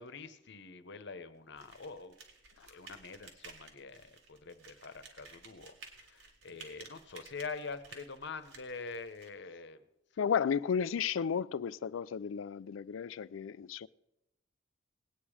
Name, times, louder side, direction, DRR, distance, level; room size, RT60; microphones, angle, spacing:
voice 1, 0.0-2.2 2.6-9.8, left 4 dB, 65° left, 1.0 m, -45 dB
sound 1, 1.6-9.3, right 4 dB, 85° right, 2.4 m, -55 dB
voice 2, 10.2-13.9, left 7 dB, 80° left, 0.4 m, -33 dB
19.5 x 9.1 x 4.9 m
head